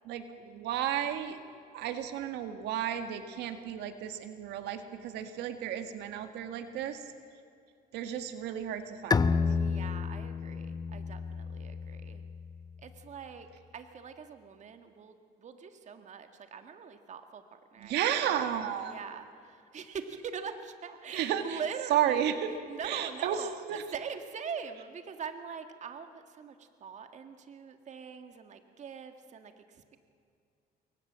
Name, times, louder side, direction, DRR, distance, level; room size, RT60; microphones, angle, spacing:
voice 1, 0.1-1.4 1.7-7.0 7.9-9.4 17.8-19.0 21.1-21.6 21.9-22.5 22.8-23.4 23.7-23.8, right 10 dB, 85° right, 8 dB, 1.9 m, -32 dB
Bowed string instrument, 9.1-12.6, left 5 dB, 25° left, 1.0 m, -31 dB
voice 2, 9.5-12.2 12.8-13.5 13.7-18.5 18.8-30.0, right 6 dB, 45° right, 7 dB, 1.8 m, -43 dB
28.0 x 23.0 x 7.6 m, 2.3 s
cardioid pair, 110°, 17 cm